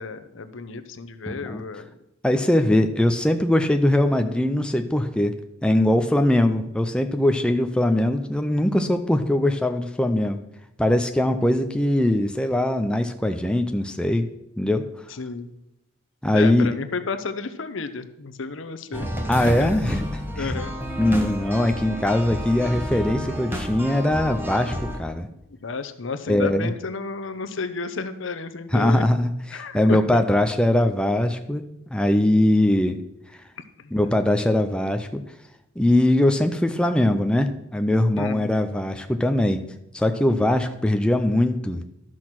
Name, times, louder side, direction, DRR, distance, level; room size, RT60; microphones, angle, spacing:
voice 1, 0.0-1.9 15.1-15.5 16.3-19.1 19.4-19.8 20.4-20.7 25.6-29.1 29.5-30.2 33.6-34.1 38.1-38.5, left 4 dB, 65° left, 10 dB, 0.8 m, -32 dB
voice 2, 1.3-1.6 2.2-5.3 5.6-10.4 10.8-14.3 14.6-14.9 16.2-16.7 19.3-20.5 21.0-25.3 26.3-26.7 28.7-31.6 31.9-33.0 33.3-33.4 33.9-35.2 35.8-39.6 39.9-41.8, left 1 dB, 5° left, 6 dB, 0.4 m, -21 dB
sound 1, 18.9-25.0, equal, 10° right, 1.1 m, -30 dB
12.5 x 6.2 x 6.0 m, 0.88 s
head